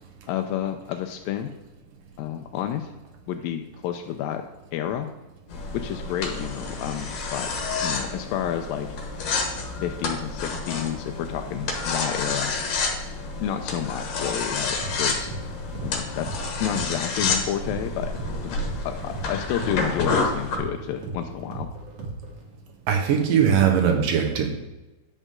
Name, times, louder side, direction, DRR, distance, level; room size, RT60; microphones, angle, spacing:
voice 1, 0.3-1.5 2.2-2.9 3.3-4.4 4.7-5.1 5.7-7.5 7.8-8.9 9.8-12.5 13.4-15.3 15.8-18.1 18.4-21.7, left 10 dB, 90° left, 5 dB, 2.4 m, -30 dB
sound 1, 5.5-20.6, left 4 dB, 70° left, 2.9 m, -29 dB
sound 2, 14.8-22.5, right 3 dB, 50° right, 2.4 m, -37 dB
voice 2, 22.9-24.5, right 8 dB, 75° right, 2 dB, 2.8 m, -20 dB
11.0 x 8.1 x 3.7 m, 1.1 s
omnidirectional pair, 4.0 m